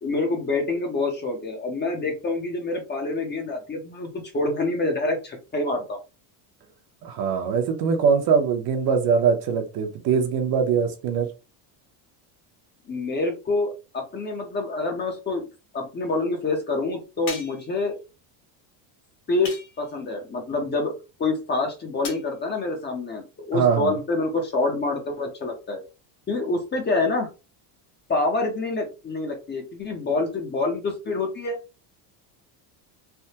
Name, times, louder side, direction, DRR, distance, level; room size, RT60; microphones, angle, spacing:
voice 1, 0.0-6.0 12.9-15.4 15.7-18.0 19.3-19.5 19.8-20.9 21.2-25.8 26.3-27.3 28.1-31.6, left 3 dB, 20° left, 0.6 m, -26 dB
voice 2, 7.0-11.3 23.5-23.9, right 6 dB, 50° right, 0.7 m, -22 dB
sound 1, 17.3-17.8 19.4-20.0 22.0-22.3, left 4 dB, 80° left, 1.5 m, -37 dB
3.4 x 2.1 x 2.8 m
cardioid pair, 135°, 48 cm